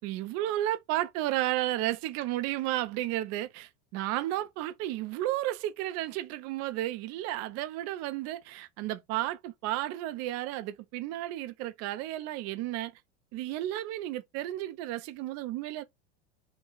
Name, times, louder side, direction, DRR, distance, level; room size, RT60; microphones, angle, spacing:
voice 1, 0.0-12.9 13.3-15.8, right 14 dB, 50° right, 0.7 m, -33 dB
3.2 x 2.3 x 3.8 m
supercardioid pair, 115°, 32 cm